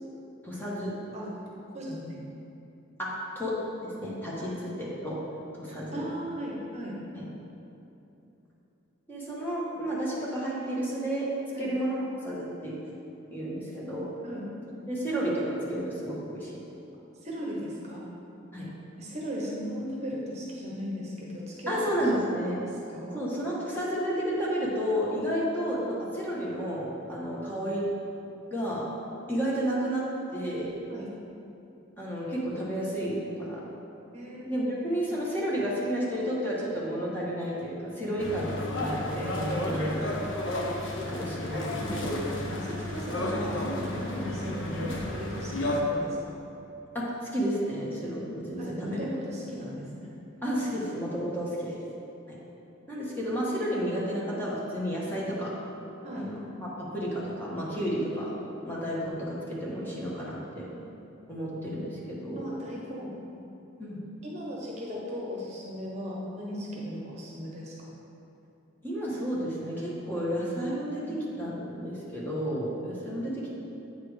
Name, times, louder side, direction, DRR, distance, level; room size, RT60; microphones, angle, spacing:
voice 1, 0.4-0.9 3.0-3.1 3.3-3.5 3.8-5.2 5.5-6.0 7.1-7.2 9.1-11.3 11.6-12.7 13.3-14.1 14.9-16.5 18.5-18.7 21.7-22.6 23.1-27.8 28.5-28.9 29.3-30.1 30.3-30.7 32.0-33.6 34.4-40.0 41.1-42.2 46.9-47.0 47.3-49.1 50.4-51.8 52.9-55.5 56.1-56.3 56.6-58.3 58.6-60.7 61.3-62.5 63.8-64.0 68.8-73.5, equal, 10° left, -7 dB, 1.4 m, -31 dB
voice 2, 1.7-2.3 4.4-4.5 5.7-6.9 11.5-11.7 14.2-14.5 17.2-18.0 19.0-22.0 22.9-23.2 30.9-31.1 34.1-34.8 39.6-40.0 42.6-46.4 48.6-49.9 56.0-56.3 60.8-60.9 62.3-63.2 64.2-67.7 71.0-71.1, equal, 35° right, -4 dB, 1.1 m, -37 dB
sound 1, 38.2-45.8, left 1 dB, 65° left, 0.9 m, -32 dB
8.4 x 4.3 x 5.0 m, 2.9 s
head